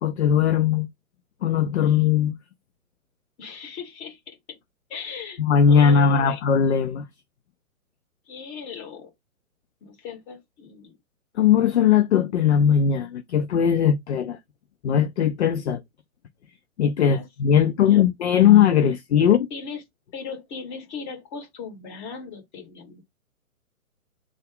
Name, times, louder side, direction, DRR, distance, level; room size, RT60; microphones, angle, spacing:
voice 1, 0.0-0.9 1.4-2.4 5.4-7.1 11.4-14.4 14.8-15.8 16.8-19.4, left 8 dB, 50° left, 0.6 m, -19 dB
voice 2, 3.4-4.6 4.9-5.4 5.7-6.4 8.3-9.1 9.8-11.0 17.0-17.3 17.5-18.5 19.2-19.8 20.1-23.0, left 6 dB, 35° left, 2.3 m, -38 dB
3.9 x 2.4 x 3.6 m
figure-of-eight pair, 130°, 43 cm